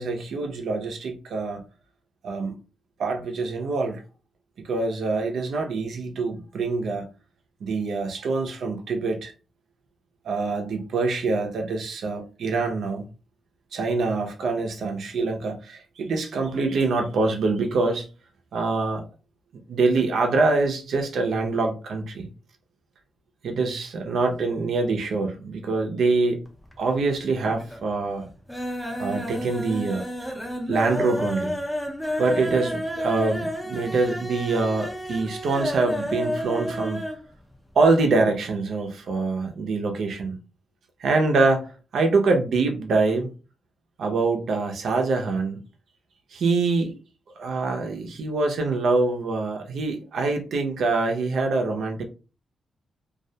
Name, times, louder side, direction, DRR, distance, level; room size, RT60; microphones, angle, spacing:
voice 1, 0.0-1.6 2.2-2.5 3.0-4.0 4.6-7.1 7.6-9.3 10.2-13.1 13.7-18.1 18.5-19.0 19.7-22.3 23.4-26.4 26.8-28.3 29.0-30.1 30.7-31.6 32.2-37.0 37.8-40.3 41.0-43.3 44.0-45.6 46.3-46.9 47.4-52.0, right 3 dB, 70° right, 3 dB, 0.4 m, -25 dB
sound 1, 26.4-27.1 27.4-27.9 28.2-37.2 37.5-37.6 37.9-38.0, equal, ahead, 0.5 m, -31 dB
2.2 x 2.1 x 2.6 m, 0.34 s
wide cardioid pair, 130°, 0 cm